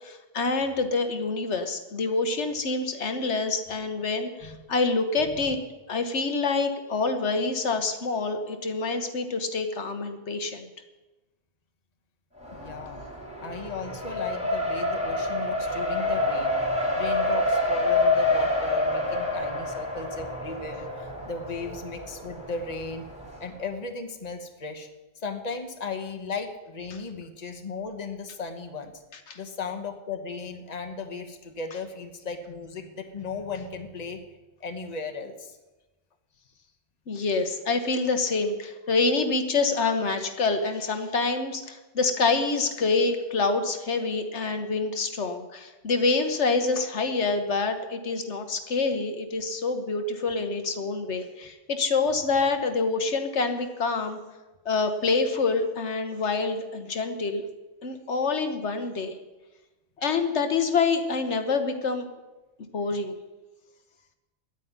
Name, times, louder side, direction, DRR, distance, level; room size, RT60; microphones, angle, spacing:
voice 1, 0.0-5.6 5.9-10.7 29.3-29.4 37.1-54.2 54.6-57.4 57.8-59.1 60.0-62.1 62.7-63.1, left 4 dB, 75° left, 7 dB, 1.4 m, -26 dB
Race car auto racing, 12.4-23.4, left 2 dB, 5° right, 3.2 m, -28 dB
voice 2, 12.5-13.1 13.4-16.6 16.9-23.1 23.4-24.9 25.2-28.9 29.3-34.2 34.6-35.6, left 4 dB, 35° left, 6 dB, 1.3 m, -36 dB
10.0 x 9.6 x 9.4 m, 1.1 s
omnidirectional pair, 1.2 m